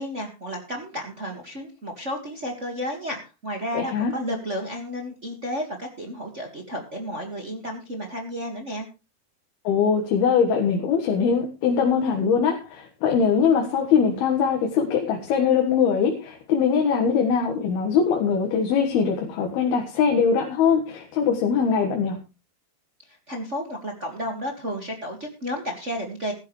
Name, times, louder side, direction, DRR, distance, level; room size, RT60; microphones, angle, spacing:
voice 1, 0.0-8.9 23.3-26.3, equal, 40° right, 2 dB, 1.1 m, -32 dB
voice 2, 3.7-4.1 9.7-22.2, left 6 dB, 75° left, 2 dB, 3.5 m, -22 dB
15.5 x 13.0 x 3.2 m, 0.29 s
omnidirectional pair, 4.5 m